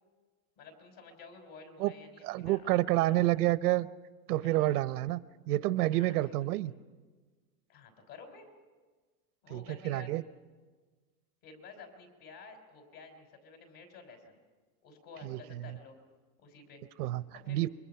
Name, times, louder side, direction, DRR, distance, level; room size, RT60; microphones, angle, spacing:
voice 1, 0.6-3.4 4.4-5.0 5.9-6.7 7.7-8.5 9.4-10.1 11.4-14.4 14.8-16.0 16.4-16.8 17.3-17.7, left 4 dB, 55° left, 5 dB, 5.3 m, -52 dB
voice 2, 2.2-3.9 4.3-5.2 5.5-6.7 9.5-10.2 15.2-15.4 17.0-17.7, right 16 dB, 85° right, 16 dB, 0.8 m, -29 dB
28.0 x 23.5 x 5.8 m, 1.4 s
supercardioid pair, 140°, 44 cm